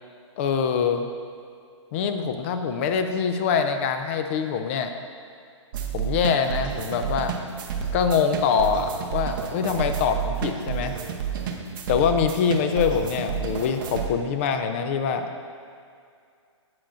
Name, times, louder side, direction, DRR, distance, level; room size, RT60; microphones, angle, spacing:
voice 1, 0.4-1.1 1.9-4.9 5.9-7.3 7.9-10.9 11.9-15.3, left 6 dB, 25° left, 7 dB, 0.4 m, -24 dB
sound 1, 5.7-14.1, right 8 dB, 45° right, 0.8 m, -31 dB
10.0 x 7.5 x 2.5 m, 2.3 s
hypercardioid pair, 160°, 16 cm